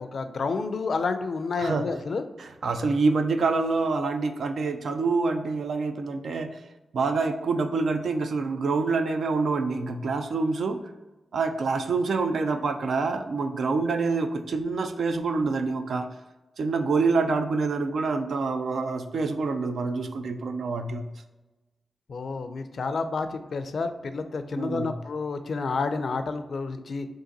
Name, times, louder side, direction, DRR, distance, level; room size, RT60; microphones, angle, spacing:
voice 1, 0.0-2.2 22.1-27.1, left 4 dB, 70° left, 9 dB, 0.4 m, -30 dB
voice 2, 2.4-6.6 6.9-10.8 11.3-16.1 16.6-21.0 24.6-24.9, right 4 dB, 80° right, 7 dB, 0.4 m, -26 dB
3.8 x 2.5 x 3.9 m, 1.1 s
cardioid pair, 50°, 0 cm